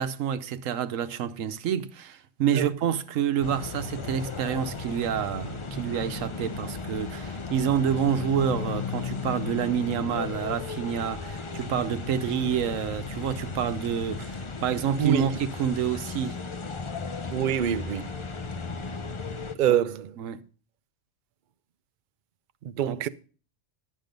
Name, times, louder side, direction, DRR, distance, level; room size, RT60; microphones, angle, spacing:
voice 1, 0.0-16.4 19.7-19.8 20.2-20.4 22.9-23.0, right 8 dB, 90° right, 1.2 m, -28 dB
sound 1, 3.4-19.6, left 4 dB, 30° left, 0.6 m, -35 dB
voice 2, 17.3-18.0 19.6-20.1 22.8-23.1, right 10 dB, 55° right, 0.6 m, -25 dB
11.0 x 7.6 x 5.2 m
omnidirectional pair, 1.3 m